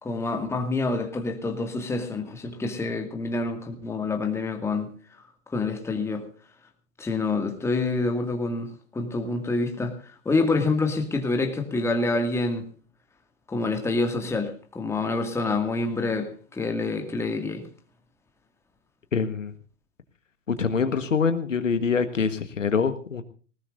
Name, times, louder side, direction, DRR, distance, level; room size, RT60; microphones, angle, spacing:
voice 1, 0.0-4.9 5.5-6.3 7.0-8.7 8.9-12.6 13.5-17.6, left 3 dB, 5° left, 4 dB, 2.1 m, -27 dB
voice 2, 19.1-19.5 20.5-23.2, left 5 dB, 80° left, 10 dB, 1.5 m, -25 dB
20.0 x 19.5 x 2.6 m, 0.39 s
figure-of-eight pair, 110°, 37 cm